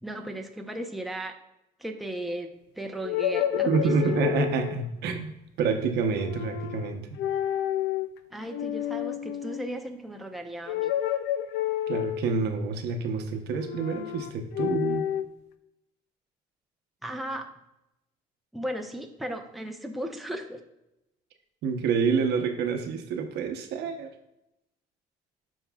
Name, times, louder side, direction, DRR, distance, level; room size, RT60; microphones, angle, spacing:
voice 1, 0.0-1.3 1.8-4.3 8.3-10.9 17.0-17.5 18.5-20.6, right 1 dB, ahead, 3 dB, 0.7 m, -36 dB
sound 1, 3.0-4.8 6.1-6.9 7.2-8.1 8.5-9.7 10.7-12.5 13.6-15.3, left 11 dB, 85° left, 0.5 m, -30 dB
voice 2, 3.7-5.3 5.6-7.1 11.9-15.1 21.6-24.1, right 5 dB, 80° right, 5 dB, 0.9 m, -27 dB
11.5 x 4.6 x 2.3 m, 0.88 s
cardioid pair, 110°, 17 cm